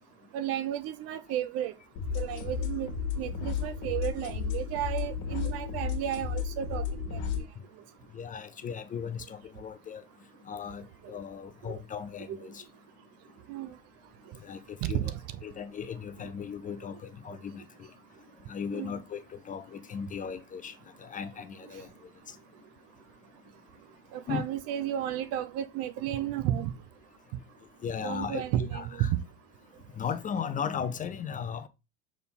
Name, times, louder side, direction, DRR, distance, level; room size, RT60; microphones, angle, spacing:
voice 1, 0.3-1.7 2.1-2.9 3.2-6.8 7.1-7.2 12.3-12.4 13.5-13.7 14.8-15.1 17.3-17.4 18.7-19.0 24.1-26.7 28.0-29.2, right 11 dB, 35° right, 0.5 m, -32 dB
sound 1, 2.0-7.4, left 6 dB, 40° left, 1.7 m, -33 dB
voice 2, 8.1-10.0 10.4-12.6 14.4-15.1 15.4-17.9 18.5-21.9 22.3-22.4 24.3-24.4 27.8-29.1 30.0-31.7, left 7 dB, 20° left, 0.5 m, -37 dB
6.8 x 3.7 x 4.0 m
figure-of-eight pair, 75°, 44 cm